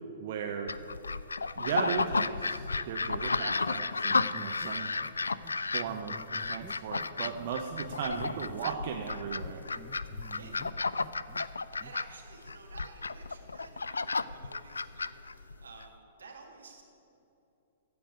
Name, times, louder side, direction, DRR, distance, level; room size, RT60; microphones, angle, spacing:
voice 1, 0.2-0.7 1.6-4.9 5.7-6.2 6.5-10.0, right 7 dB, 45° right, 3 dB, 0.7 m, -36 dB
sound 1, 0.7-15.9, left 4 dB, 75° left, 0.3 m, -33 dB
sound 2, 4.1-4.7 5.0-5.1 5.4-5.5 5.9-7.5 7.9-8.7 9.0-10.7 11.0-11.5 11.8-11.9, right 1 dB, 10° right, 0.6 m, -50 dB
voice 2, 11.7-16.8, right 4 dB, 70° right, 1 dB, 2.0 m, -52 dB
15.0 x 5.2 x 8.3 m, 2.9 s
figure-of-eight pair, 110°, 0 cm